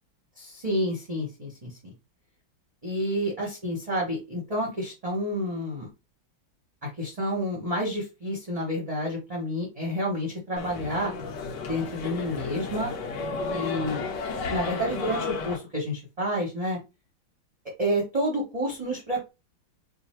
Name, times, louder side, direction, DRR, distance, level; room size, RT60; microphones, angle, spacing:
voice 1, 0.4-1.9 2.8-5.9 6.8-11.1 11.7-12.9 13.5-14.0 14.5-16.8 17.8-19.3, equal, 30° right, -2 dB, 0.6 m, -29 dB
sound 1, 10.6-15.6, left 4 dB, 65° left, 1.4 m, -33 dB
3.7 x 2.2 x 4.3 m, 0.26 s
omnidirectional pair, 2.1 m